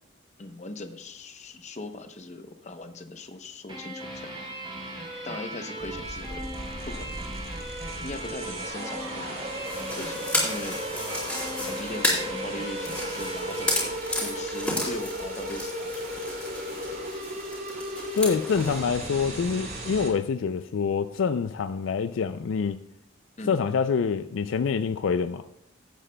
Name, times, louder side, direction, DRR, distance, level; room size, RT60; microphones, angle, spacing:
voice 1, 0.4-4.3 5.2-6.5 6.9-7.3 8.0-9.4 9.8-10.8 11.6-16.3 23.4-23.6, left 2 dB, 35° left, 8 dB, 0.8 m, -39 dB
sound 1, 3.7-15.0, right 1 dB, 25° right, 3.2 m, -38 dB
sound 2, 5.8-20.1, equal, 50° right, 2.6 m, -36 dB
sound 3, 9.6-18.8, left 1 dB, 5° left, 3.8 m, -33 dB
voice 2, 18.2-22.8 23.5-25.4, left 5 dB, 65° left, 11 dB, 0.4 m, -26 dB
16.5 x 8.9 x 2.2 m, 0.75 s
head